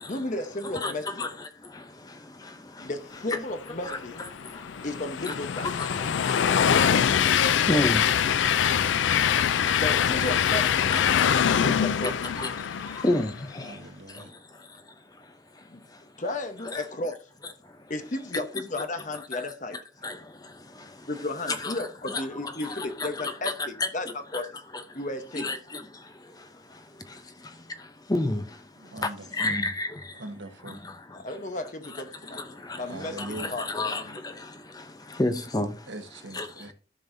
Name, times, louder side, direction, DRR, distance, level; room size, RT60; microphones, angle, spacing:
voice 1, 0.1-1.2 2.8-4.2 4.8-5.7 9.5-10.9 11.6-12.2 15.7-15.8 16.2-17.2 17.9-19.8 21.1-24.5 24.9-25.5 31.1-32.4 32.7-34.2, left 2 dB, 40° left, 1.0 m, -34 dB
Train, 4.0-13.4, left 8 dB, 80° left, 0.4 m, -24 dB
voice 2, 5.6-5.9 7.7-8.0 12.4-12.5 13.0-13.3 16.7-16.8 20.0-20.1 21.5-21.7 22.1-22.2 22.6-22.9 23.4-23.5 25.4-25.6 28.1-28.4 29.4-29.9 33.4-34.0 35.2-35.7 36.4-36.5, left 1 dB, 20° left, 0.7 m, -27 dB
voice 3, 13.6-14.3 28.8-29.6 30.1-30.8 32.9-33.6 35.9-36.7, right 2 dB, 70° right, 1.4 m, -41 dB
14.0 x 5.4 x 2.7 m
head